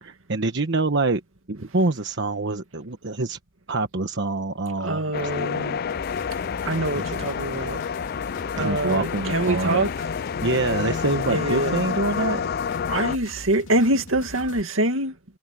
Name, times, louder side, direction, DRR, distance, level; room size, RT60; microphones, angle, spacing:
voice 1, 0.0-1.2 1.5-3.4 3.7-5.0 6.9-7.2 8.6-9.8 10.4-12.4, right 2 dB, 60° right, 1.2 m, -25 dB
voice 2, 4.8-5.8 6.6-7.8 8.6-9.9 11.3-11.8 12.9-15.2, right 1 dB, 75° right, 2.1 m, -25 dB
sound 1, 5.1-13.2, left 6 dB, 50° left, 0.4 m, -29 dB
sound 2, 5.9-14.6, left 1 dB, 65° left, 3.3 m, -41 dB
head